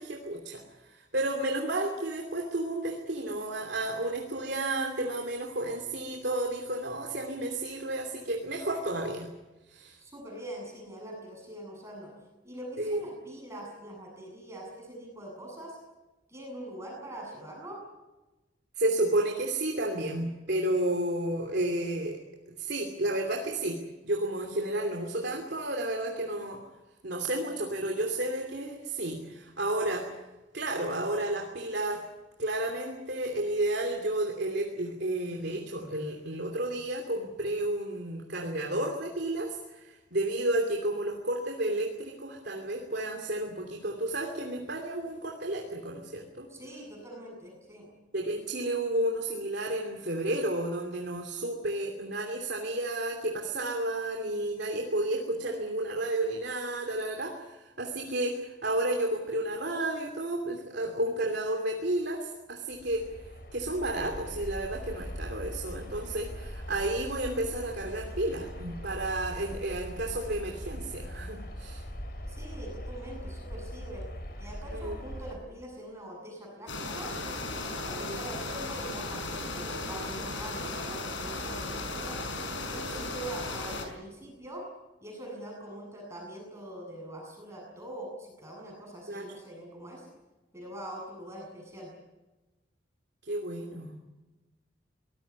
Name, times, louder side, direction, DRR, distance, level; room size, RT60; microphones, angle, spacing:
voice 1, 0.0-9.3 9.7-10.0 12.8-13.0 18.8-22.2 22.6-26.6 27.0-30.2 30.5-32.0 32.4-46.5 48.1-63.1 63.5-71.8 74.7-75.0 77.9-78.2 89.1-89.3 93.3-94.0, right 1 dB, 60° right, 2 dB, 2.9 m, -32 dB
voice 2, 10.0-12.1 12.4-15.8 16.3-17.8 46.5-47.9 72.3-74.0 74.4-77.1 77.7-82.2 82.7-84.6 85.0-90.1 90.5-91.9, right 1 dB, 15° right, -1 dB, 7.9 m, -43 dB
sound 1, 62.7-75.4, equal, 50° left, 4.3 m, -41 dB
sound 2, 76.7-83.8, left 2 dB, 75° left, 5.6 m, -36 dB
24.0 x 19.5 x 8.5 m, 1.1 s
head